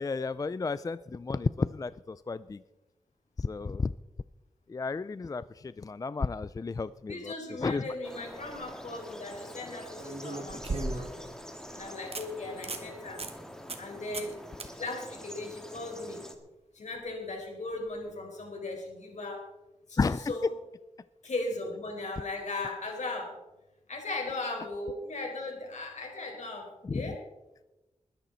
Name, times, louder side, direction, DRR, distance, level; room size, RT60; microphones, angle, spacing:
voice 1, 0.0-2.6 3.4-3.9 4.7-7.9 20.0-20.3 26.8-27.2, left 4 dB, 30° left, 15 dB, 0.3 m, -32 dB
voice 2, 7.1-11.2 11.7-13.2 13.8-14.4 14.7-16.2 16.7-19.5 19.9-20.0 20.3-20.5 21.2-23.4 23.9-27.2, left 2 dB, 75° left, 1 dB, 4.4 m, -37 dB
sound 1, 8.0-16.3, equal, 5° left, 1.9 m, -46 dB
sound 2, 8.3-8.6 10.0-11.3 11.7-11.8 12.1-12.2 12.6-12.9 13.2-13.3 13.7-13.9 14.1-14.3 14.6-14.7 17.8-17.9, right 2 dB, 55° right, 1.9 m, -36 dB
21.0 x 10.5 x 4.0 m, 1.0 s
wide cardioid pair, 85°, 12 cm